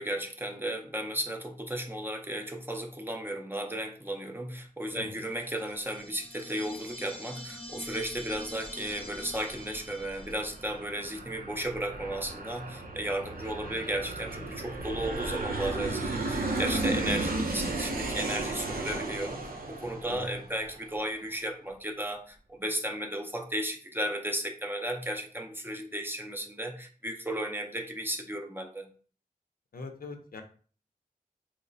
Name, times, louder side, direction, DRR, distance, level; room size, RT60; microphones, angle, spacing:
voice 1, 0.0-19.4 19.7-28.9, right 1 dB, 15° right, 3 dB, 0.5 m, -34 dB
sound 1, 5.4-10.8, equal, 35° left, 0.6 m, -45 dB
Aircraft, 7.8-21.0, right 2 dB, 80° right, 0.6 m, -35 dB
voice 2, 15.0-15.3 20.1-20.2 29.7-30.4, left 3 dB, 75° left, 4 dB, 0.6 m, -42 dB
3.0 x 2.1 x 3.8 m, 0.42 s
wide cardioid pair, 70°, 15 cm